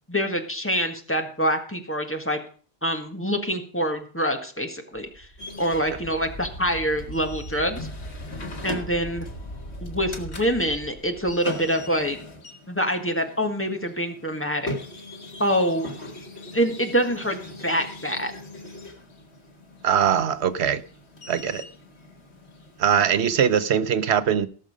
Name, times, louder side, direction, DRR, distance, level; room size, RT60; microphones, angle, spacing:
voice 1, 0.1-2.4 2.8-5.3 5.6-7.9 8.6-9.3 9.8-12.2 12.7-14.8 15.4-15.9 16.5-18.3, equal, 10° left, 1.6 m, -25 dB
Wind, 4.9-11.3, equal, 60° left, 2.5 m, -39 dB
sound 1, 5.4-23.7, left 2 dB, 85° left, 2.1 m, -41 dB
voice 2, 19.8-20.8 21.3-21.7 22.8-24.5, right 8 dB, 90° right, 1.1 m, -21 dB
18.0 x 6.5 x 5.0 m
omnidirectional pair, 1.1 m